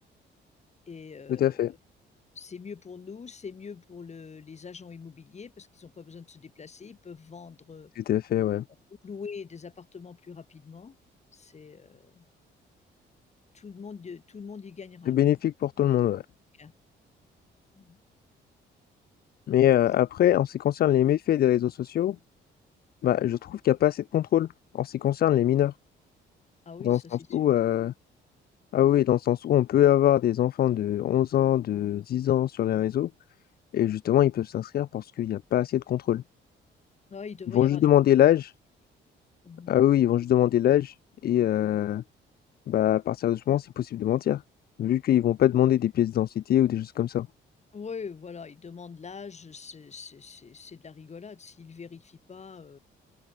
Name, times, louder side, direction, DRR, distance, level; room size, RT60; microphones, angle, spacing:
voice 1, 0.9-1.8 2.4-7.9 9.0-11.0 11.3-12.2 13.5-15.2 16.6-16.7 17.7-18.0 26.7-27.4 37.1-37.9 39.4-39.7 47.7-52.8, left 5 dB, 35° left, 1.8 m, -43 dB
voice 2, 1.4-1.7 8.0-8.6 15.1-16.2 19.5-22.2 23.0-24.5 24.7-25.7 26.8-27.0 27.3-27.9 28.7-33.1 33.7-36.2 37.5-38.5 39.7-41.0 41.2-42.0 42.7-44.4 44.8-47.3, left 12 dB, 50° left, 0.4 m, -23 dB
open air
cardioid pair, 90°, 20 cm